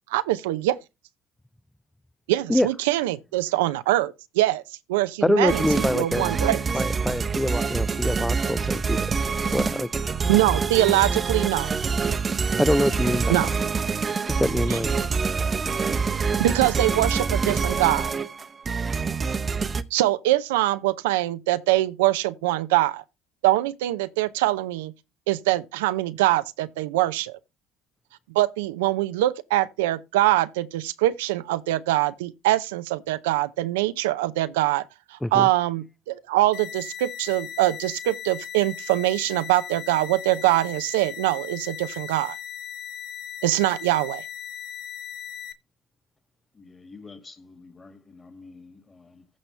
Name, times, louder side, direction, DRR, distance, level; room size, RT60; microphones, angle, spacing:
voice 1, 0.1-0.8 2.3-4.6 4.9-6.6 10.3-11.7 13.3-13.5 14.7-14.8 16.4-18.1 19.9-23.0 23.4-24.9 25.3-27.4 28.3-34.8 35.1-42.4 43.4-44.2, right 16 dB, 90° right, 0.5 m, -23 dB
voice 2, 5.2-6.3 6.7-9.0 9.5-10.0 12.6-13.2 14.3-14.9 35.2-35.5, left 1 dB, 5° left, 0.4 m, -24 dB
sound 1, 5.5-19.8, right 5 dB, 35° right, 0.8 m, -26 dB
sound 2, 36.5-45.5, left 9 dB, 65° left, 0.9 m, -38 dB
voice 3, 46.5-49.3, left 4 dB, 25° left, 2.1 m, -48 dB
15.0 x 5.4 x 3.2 m
supercardioid pair, 75°, 0 cm